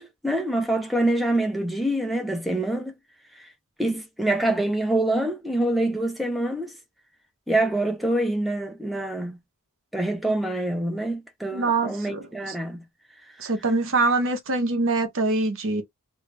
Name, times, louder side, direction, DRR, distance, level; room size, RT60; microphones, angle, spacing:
voice 1, 0.0-2.9 3.4-3.5 3.8-6.7 7.5-9.4 9.9-12.8 13.4-13.5, right 1 dB, ahead, 0.5 m, -25 dB
voice 2, 11.5-12.2 13.4-15.8, right 3 dB, 60° right, 0.8 m, -24 dB
2.6 x 2.4 x 3.1 m
head